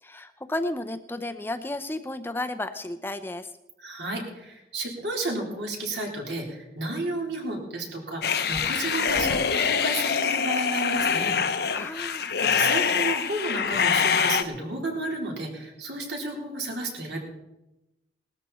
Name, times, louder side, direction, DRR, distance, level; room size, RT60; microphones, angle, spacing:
voice 1, 0.0-3.5 11.8-12.3, left 1 dB, 10° left, 8 dB, 0.5 m, -33 dB
voice 2, 3.8-11.4 12.4-17.2, right 2 dB, 75° right, 0 dB, 4.0 m, -32 dB
sound 1, 8.2-14.4, left 6 dB, 60° left, 0.8 m, -25 dB
19.5 x 13.5 x 4.2 m, 0.94 s
head